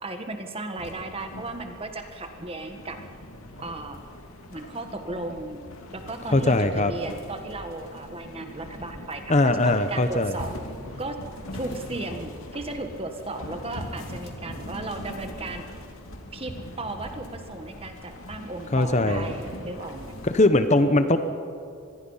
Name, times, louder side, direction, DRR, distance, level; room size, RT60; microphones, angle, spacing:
voice 1, 0.0-3.0 3.6-4.0 4.5-5.6 5.9-10.5 11.0-11.2 11.5-15.7 16.3-20.1, right 2 dB, 25° right, 6 dB, 1.4 m, -35 dB
sound 1, 0.8-20.5, left 1 dB, 75° left, 2.8 m, -41 dB
voice 2, 6.3-6.9 9.3-10.4 18.7-19.3 20.2-21.2, left 2 dB, 30° left, 9 dB, 0.9 m, -20 dB
26.0 x 20.5 x 5.6 m, 2.6 s
head